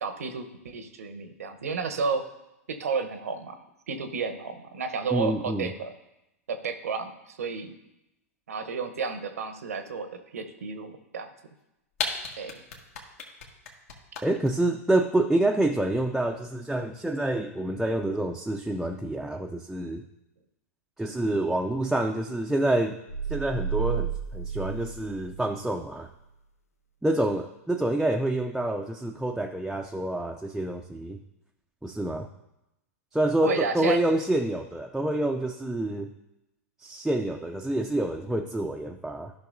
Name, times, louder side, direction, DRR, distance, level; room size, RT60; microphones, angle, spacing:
voice 1, 0.0-2.2 2.7-5.9 6.5-7.7 8.5-11.3 12.4-12.6 33.4-34.0, right 5 dB, 80° right, 8 dB, 0.9 m, -32 dB
voice 2, 5.1-5.7 14.2-20.0 21.0-23.0 23.3-26.1 27.0-31.2 31.8-32.3 33.1-36.1 36.8-39.3, right 1 dB, 5° right, 2 dB, 0.4 m, -27 dB
sound 1, 11.6-11.7 11.9-14.5, left 4 dB, 70° left, 1.6 m, -32 dB
sound 2, 23.1-25.8, right 8 dB, 90° left, 0.6 m, -32 dB
13.5 x 5.8 x 2.6 m, 0.92 s
hypercardioid pair, 105°, 8 cm